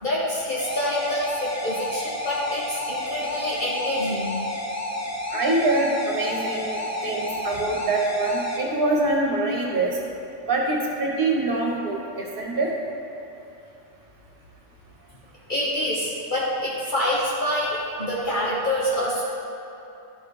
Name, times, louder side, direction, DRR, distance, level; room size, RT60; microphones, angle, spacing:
voice 1, 0.0-4.3 15.5-19.2, left 1 dB, 45° left, -7 dB, 1.2 m, -26 dB
sound 1, 0.6-8.6, left 1 dB, 15° left, 0.8 m, -30 dB
voice 2, 5.3-10.0 10.5-12.7, right 2 dB, 45° right, -2 dB, 1.5 m, -24 dB
12.0 x 4.8 x 4.9 m, 2.9 s
omnidirectional pair, 1.3 m